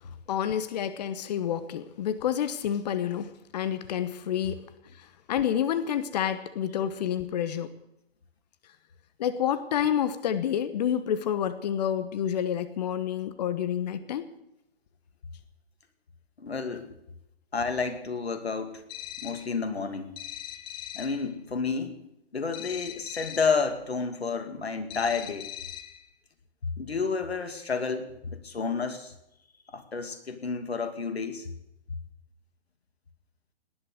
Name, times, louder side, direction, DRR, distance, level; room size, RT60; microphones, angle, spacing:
voice 1, 0.3-4.6 5.3-7.7 9.2-14.2, left 9 dB, 40° left, 12 dB, 1.1 m, -29 dB
voice 2, 16.4-16.9 17.5-18.8 19.2-20.1 20.9-22.0 22.3-25.5 26.8-29.1 29.7-31.5, left 5 dB, 75° left, 8 dB, 2.5 m, -30 dB
sound 1, 18.9-19.5 20.2-21.2 22.5-23.6 24.9-26.0, left 11 dB, 15° left, 0.9 m, -40 dB
18.5 x 11.0 x 6.8 m, 0.85 s
figure-of-eight pair, 135°, 31 cm